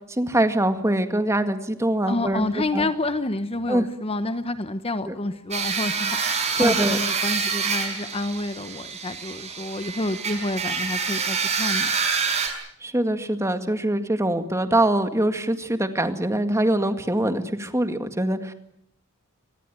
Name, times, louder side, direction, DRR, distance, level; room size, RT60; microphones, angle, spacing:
voice 1, 0.1-2.5 2.7-2.9 3.7-3.9 5.1-5.2 6.6-7.0 12.8-18.5, right 1 dB, 15° right, 9 dB, 1.9 m, -23 dB
voice 2, 2.1-11.9, left 2 dB, 25° left, 11 dB, 1.0 m, -29 dB
sound 1, 5.5-12.5, right 5 dB, 30° right, 5.9 m, -26 dB
25.5 x 20.5 x 9.1 m, 0.73 s
head